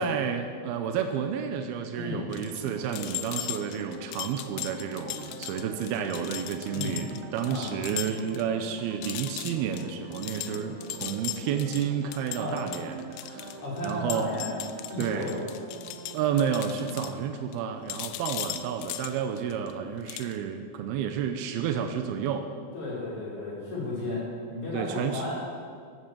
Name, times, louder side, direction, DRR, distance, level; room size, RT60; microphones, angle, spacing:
voice 1, 0.0-14.3 15.0-15.3 16.1-22.5 24.7-25.2, right 8 dB, 90° right, 6 dB, 2.8 m, -31 dB
voice 2, 1.9-2.2 6.7-7.0 7.4-7.7 12.3-12.6 13.6-14.5 14.9-15.4 22.7-25.3, left 2 dB, 35° left, -7 dB, 6.2 m, -33 dB
sound 1, 2.3-8.4 8.7-8.8 9.0-17.6 17.9-19.7 20.1-20.3, left 13 dB, 85° left, 2.4 m, -38 dB
sound 2, 2.4-17.2, right 3 dB, 70° right, 2.6 m, -44 dB
14.5 x 13.0 x 7.2 m, 2.1 s
omnidirectional pair, 4.3 m